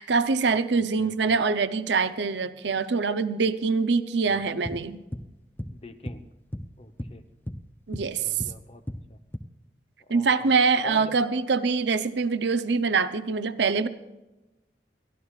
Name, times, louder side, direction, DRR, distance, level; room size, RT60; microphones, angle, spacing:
voice 1, 0.0-5.0 7.9-8.4 10.1-13.9, right 4 dB, 80° right, 12 dB, 0.7 m, -24 dB
voice 2, 1.0-1.3 4.3-4.4 5.7-6.3 6.8-7.2 8.2-8.8 9.1-9.2 10.0-10.5 10.8-11.2, left 1 dB, 35° left, 8 dB, 0.9 m, -44 dB
sound 1, 4.6-5.3 5.6-5.8 6.1-7.2 7.5-8.6 8.9-9.4, equal, 10° left, 0.5 m, -35 dB
22.5 x 13.5 x 2.4 m, 1.0 s
head